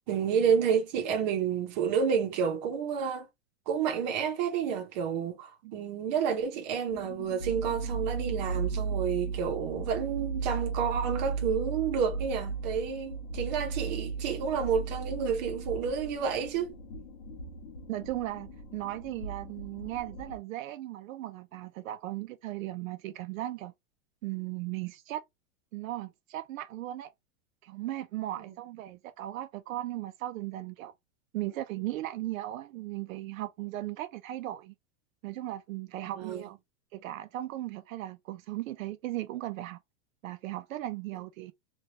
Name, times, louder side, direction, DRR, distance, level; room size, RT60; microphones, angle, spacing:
voice 1, 0.1-3.3 3.7-16.7 28.4-28.5 36.1-36.4, right 7 dB, 30° right, 0.7 m, -30 dB
sound 1, 6.9-20.4, right 4 dB, 70° left, 1.1 m, -36 dB
voice 2, 17.9-23.7 24.2-25.2 25.7-27.1 27.6-30.9 31.3-34.7 35.2-36.6 36.9-39.8 40.2-41.5, right 15 dB, 70° right, 0.5 m, -37 dB
3.2 x 2.3 x 2.7 m
supercardioid pair, 175°, 41 cm